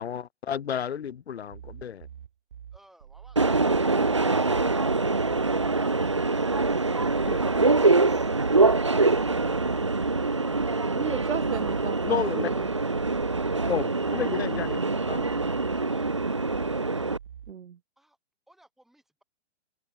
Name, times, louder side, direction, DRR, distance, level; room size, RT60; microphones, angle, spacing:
voice 1, 0.0-2.1 12.0-12.5 13.7-14.8 15.1-15.2, left 8 dB, 65° left, 1.6 m, -31 dB
sound 1, 1.5-17.5, right 9 dB, 45° right, 3.3 m, -45 dB
Subway metro underground, 3.4-17.2, right 3 dB, 25° right, 0.4 m, -24 dB
voice 2, 10.9-12.6 17.5-17.8, right 8 dB, 70° right, 1.7 m, -34 dB
voice 3, 15.7-16.2 16.7-17.2 18.0-18.2 18.5-19.2, right 1 dB, ahead, 6.4 m, -61 dB
hypercardioid pair, 175°, 35 cm